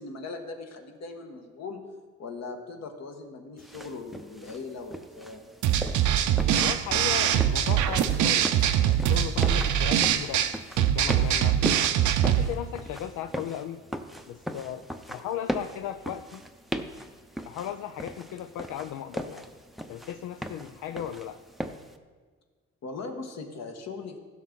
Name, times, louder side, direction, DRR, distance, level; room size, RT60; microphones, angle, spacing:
voice 1, 0.0-1.8 2.2-5.4 15.1-15.3 22.8-24.2, left 3 dB, 60° left, 4 dB, 1.5 m, -39 dB
sound 1, 3.6-22.0, equal, ahead, 0.6 m, -39 dB
sound 2, 5.6-12.5, right 10 dB, 75° right, 0.7 m, -23 dB
voice 2, 6.5-8.5 8.8-10.5 10.8-11.6 12.2-13.8 14.3-14.8 15.1-16.4 17.4-19.5 19.9-21.4, left 10 dB, 75° left, 9 dB, 0.5 m, -36 dB
15.5 x 6.1 x 3.9 m, 1.5 s
cardioid pair, 90°, 30 cm